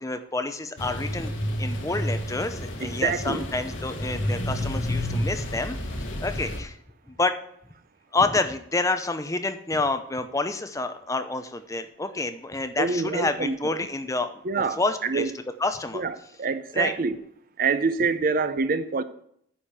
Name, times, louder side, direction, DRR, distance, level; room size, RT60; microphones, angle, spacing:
voice 1, 0.0-1.3 1.6-5.8 6.2-6.8 7.1-7.3 8.1-15.3 15.6-16.0 16.7-16.9, left 3 dB, 15° left, 0.7 m, -28 dB
sound 1, 0.8-6.6, equal, 75° left, 1.6 m, -30 dB
voice 2, 2.8-3.4 12.8-13.8 14.4-15.3 15.9-17.2 17.6-19.0, right 4 dB, 45° right, 0.6 m, -26 dB
9.9 x 5.2 x 7.3 m
head